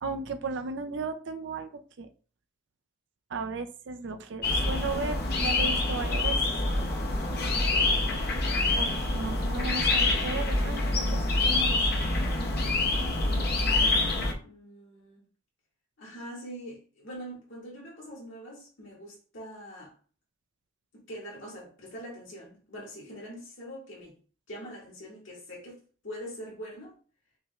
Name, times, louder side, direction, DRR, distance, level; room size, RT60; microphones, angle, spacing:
voice 1, 0.0-2.1 3.3-6.5 8.7-11.8, right 4 dB, 60° right, 0.4 m, -35 dB
sound 1, 4.4-14.3, left 2 dB, 50° left, 0.7 m, -26 dB
voice 2, 14.4-15.3 16.0-19.9 20.9-24.2 24.5-27.0, equal, 65° left, 2.1 m, -43 dB
5.8 x 3.1 x 2.4 m
head